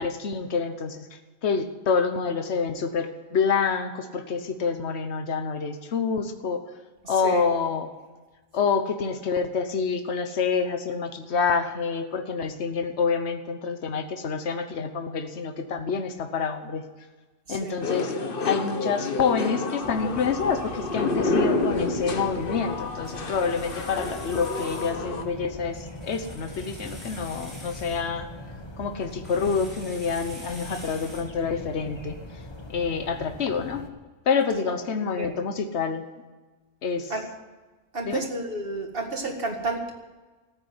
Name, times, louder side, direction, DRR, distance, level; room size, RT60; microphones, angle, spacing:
voice 1, 0.0-6.6 7.1-7.9 8.5-16.8 17.5-18.1 18.4-28.3 28.8-32.4 32.7-33.8 34.2-36.1 36.8-37.1 38.0-38.2, left 5 dB, 80° left, 7 dB, 1.3 m, -27 dB
voice 2, 7.0-7.5 17.5-17.8 34.5-34.6 35.2-35.3 37.1-37.3 37.9-39.9, right 3 dB, 55° right, 2 dB, 2.2 m, -31 dB
sound 1, 17.8-25.2, left 3 dB, 55° left, 1.3 m, -29 dB
sound 2, 19.8-33.9, left 1 dB, 25° left, 1.2 m, -41 dB
sound 3, 23.0-25.0 25.7-28.0 29.0-31.2, equal, ahead, 7.0 m, -46 dB
14.0 x 8.7 x 9.6 m, 1.2 s
omnidirectional pair, 1.1 m